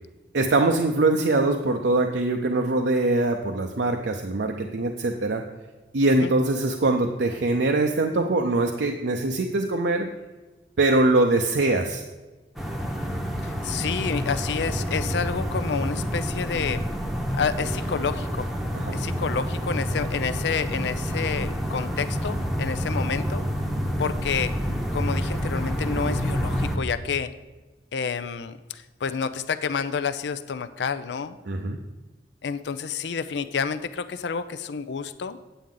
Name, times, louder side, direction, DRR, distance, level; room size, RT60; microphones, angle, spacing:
voice 1, 0.3-5.4 5.9-10.1 10.8-12.0 18.7-19.0 31.5-31.8, right 2 dB, 75° right, 3 dB, 0.6 m, -23 dB
sound 1, 12.6-26.8, equal, ahead, 0.9 m, -28 dB
voice 2, 13.4-16.8 17.3-18.5 18.9-23.4 24.0-24.5 24.9-27.3 27.9-31.4 32.4-35.4, left 6 dB, 75° left, 12 dB, 0.4 m, -29 dB
9.2 x 8.3 x 3.8 m, 1.2 s
head